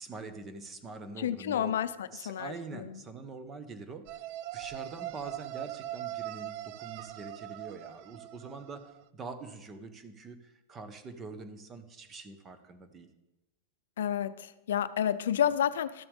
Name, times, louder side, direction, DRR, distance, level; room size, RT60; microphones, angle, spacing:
voice 1, 0.0-1.8 2.1-4.2 4.5-13.1, right 4 dB, 25° right, 9 dB, 1.2 m, -44 dB
voice 2, 1.2-3.0 14.0-16.0, left 9 dB, 80° left, 14 dB, 0.5 m, -30 dB
sound 1, 4.1-9.0, right 15 dB, 55° right, 0.4 m, -41 dB
13.5 x 6.9 x 3.6 m, 0.98 s
hypercardioid pair, 115°, 0 cm